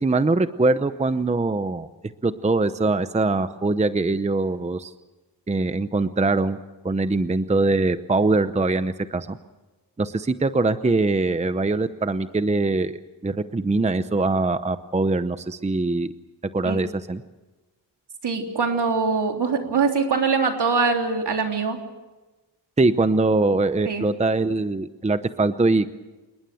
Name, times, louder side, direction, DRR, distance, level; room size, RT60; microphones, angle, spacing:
voice 1, 0.0-1.9 2.2-4.9 5.5-6.6 6.8-9.4 10.0-16.1 16.5-17.2 22.8-25.9, right 3 dB, 15° right, 11 dB, 0.7 m, -22 dB
voice 2, 18.2-21.8 23.8-24.1, right 4 dB, 70° right, 3 dB, 3.5 m, -23 dB
27.5 x 20.5 x 7.7 m, 1.1 s
wide cardioid pair, 165°, 42 cm